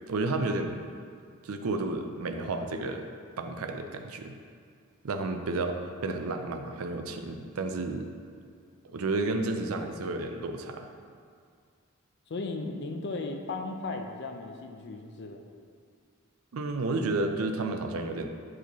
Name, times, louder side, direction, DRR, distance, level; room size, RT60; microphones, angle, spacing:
voice 1, 0.1-0.8 1.4-3.1 3.4-4.4 5.0-5.7 6.0-8.1 8.8-10.9 16.5-18.3, right 2 dB, 85° right, 6 dB, 0.5 m, -31 dB
voice 2, 12.3-15.4, left 3 dB, 55° left, 4 dB, 0.5 m, -36 dB
8.3 x 4.7 x 3.0 m, 2.2 s
head